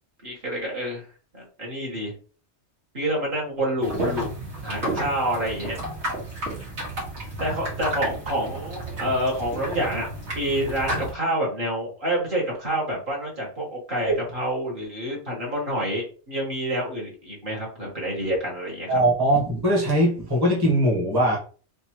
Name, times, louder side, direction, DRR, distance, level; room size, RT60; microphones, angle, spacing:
voice 1, 0.2-1.1 1.3-2.1 2.9-4.3 4.6-5.8 7.4-18.9, right 1 dB, 50° right, -4 dB, 1.7 m, -28 dB
sound 1, 3.8-11.1, right 1 dB, 70° right, 2.3 m, -32 dB
voice 2, 18.9-21.4, right 1 dB, 20° right, -3 dB, 1.3 m, -21 dB
4.2 x 3.5 x 3.1 m, 0.39 s
omnidirectional pair, 1.2 m